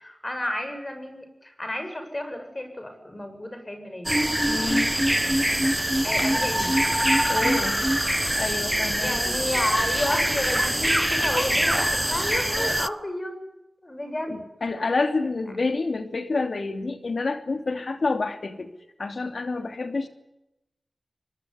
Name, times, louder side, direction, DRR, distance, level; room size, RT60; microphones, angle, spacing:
voice 1, 0.0-4.1 6.0-6.8 9.0-13.5 13.8-14.3 14.8-14.9, left 1 dB, 30° left, 6 dB, 7.9 m, -31 dB
sound 1, 4.1-12.9, equal, 10° right, 1.0 m, -23 dB
voice 2, 4.5-4.9 7.3-7.8 8.3-9.2 14.3-18.7 19.0-20.1, left 3 dB, 75° left, 8 dB, 2.9 m, -28 dB
24.5 x 20.5 x 9.9 m, 0.90 s
cardioid pair, 50°, 0 cm